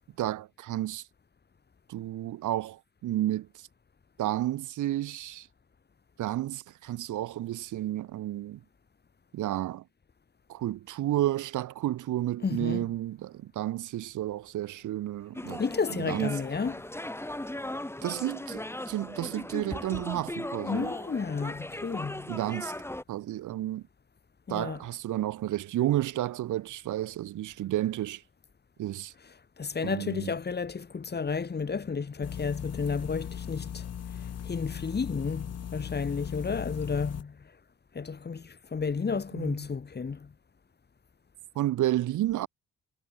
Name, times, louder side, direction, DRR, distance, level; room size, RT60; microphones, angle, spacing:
voice 1, 0.2-1.0 1.9-3.7 4.2-5.5 6.2-8.6 9.3-9.8 10.5-15.6 15.9-16.4 18.0-20.9 22.3-22.7 23.1-23.8 24.5-28.2 28.8-29.1 29.8-30.3 39.3-39.6 41.6-42.5, right 14 dB, 80° right, 2.1 m, -31 dB
voice 2, 12.4-12.9 15.6-16.8 20.6-22.3 24.5-24.8 29.6-33.9 34.4-37.4 37.9-40.3, left 5 dB, 35° left, 3.5 m, -32 dB
sound 1, 15.3-23.0, left 1 dB, 10° left, 7.2 m, -38 dB
sound 2, 32.2-37.2, left 9 dB, 55° left, 3.3 m, -38 dB
cardioid pair, 90°, 30 cm